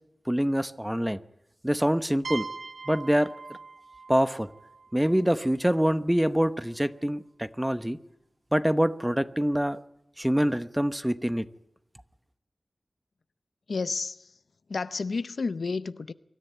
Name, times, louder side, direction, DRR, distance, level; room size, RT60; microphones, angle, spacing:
voice 1, 0.3-1.2 1.6-2.5 2.9-3.3 4.1-4.5 4.9-8.0 8.5-9.8 10.2-11.5, equal, 5° right, 0.9 m, -25 dB
sound 1, 2.2-5.9, right 4 dB, 75° right, 0.9 m, -41 dB
voice 2, 13.7-14.3 14.7-16.1, left 4 dB, 80° left, 0.7 m, -31 dB
24.5 x 13.5 x 9.2 m
wide cardioid pair, 85°, 0 cm